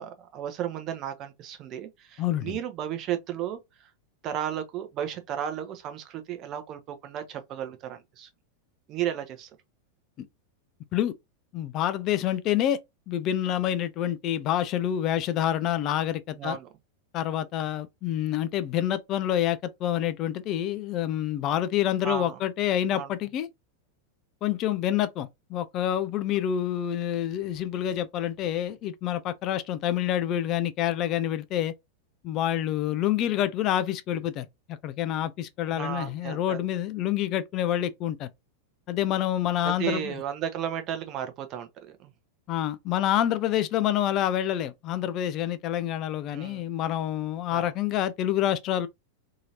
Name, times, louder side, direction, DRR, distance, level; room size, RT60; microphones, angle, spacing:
voice 1, 0.0-3.6 4.2-8.3 8.9-9.5 16.3-16.7 22.0-22.4 22.9-23.1 33.3-33.4 35.7-36.6 39.6-41.7 42.0-42.1 46.3-46.7 47.5-47.7, right 10 dB, 35° right, 0.6 m, -34 dB
voice 2, 2.2-2.6 10.2-10.3 10.9-11.1 11.5-12.8 13.1-16.6 17.1-23.5 24.4-31.7 32.2-38.3 38.9-40.1 42.5-48.9, left 11 dB, 35° left, 0.3 m, -27 dB
2.8 x 2.7 x 2.7 m
figure-of-eight pair, 90°, 0 cm